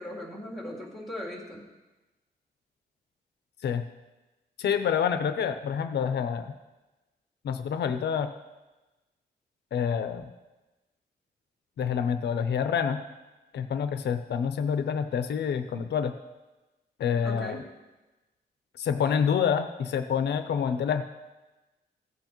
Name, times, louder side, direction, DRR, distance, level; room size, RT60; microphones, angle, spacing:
voice 1, 0.0-1.6 17.2-17.6, left 1 dB, ahead, -6 dB, 2.2 m, -38 dB
voice 2, 4.6-6.5 7.4-8.3 9.7-10.2 11.8-13.0 13.5-16.1 17.0-17.6 18.8-21.0, left 7 dB, 85° left, 9 dB, 0.6 m, -27 dB
15.5 x 8.1 x 3.0 m, 1.1 s
wide cardioid pair, 170°, 17 cm